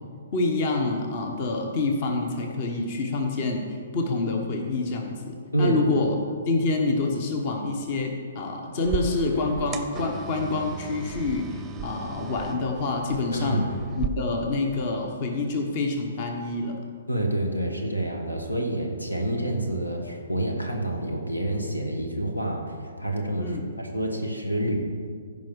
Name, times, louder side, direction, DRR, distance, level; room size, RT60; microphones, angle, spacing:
voice 1, 0.3-6.1 6.5-13.7 13.9-16.8 23.4-23.7, left 3 dB, 40° left, 3 dB, 1.2 m, -27 dB
voice 2, 5.5-5.9 13.3-13.7 17.1-24.7, right 1 dB, 85° left, 2 dB, 1.5 m, -28 dB
sound 1, 8.8-14.1, right 6 dB, 15° right, 0.7 m, -36 dB
15.5 x 5.5 x 4.8 m, 2.1 s
figure-of-eight pair, 125°, 0 cm